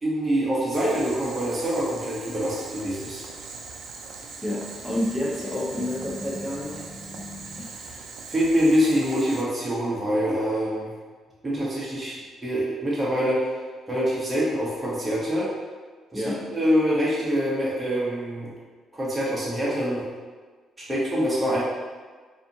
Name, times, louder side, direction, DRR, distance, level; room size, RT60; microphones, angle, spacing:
voice 1, 0.0-3.2 8.3-10.9 11.4-12.2 12.4-13.5 13.9-15.5 16.1-16.2 16.5-18.5 18.9-20.0 20.9-21.6, equal, 20° right, -7 dB, 0.9 m, -25 dB
Boiling, 0.7-9.4, right 4 dB, 70° right, 0.4 m, -40 dB
voice 2, 4.4-6.8 16.1-16.4, left 1 dB, 15° left, -6 dB, 1.1 m, -29 dB
sound 1, 4.5-7.7, left 2 dB, 45° left, 0.4 m, -42 dB
4.2 x 2.6 x 2.7 m, 1.4 s
cardioid pair, 90°, 0 cm